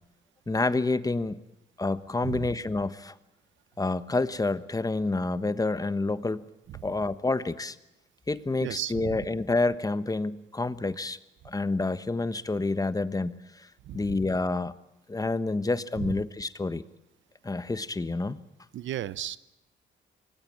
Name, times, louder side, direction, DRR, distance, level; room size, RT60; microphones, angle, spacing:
voice 1, 0.5-1.4 1.8-3.1 3.8-6.4 6.8-7.8 8.3-11.2 11.4-13.7 13.9-14.7 15.1-16.8 17.4-18.4, left 3 dB, 20° left, 14 dB, 1.2 m, -28 dB
voice 2, 2.2-2.5 6.7-6.8 8.6-9.3 13.9-14.1 16.0-16.1 18.7-19.4, right 12 dB, 75° right, 17 dB, 0.9 m, -35 dB
24.5 x 19.5 x 8.8 m, 0.89 s
cardioid pair, 90°, 20 cm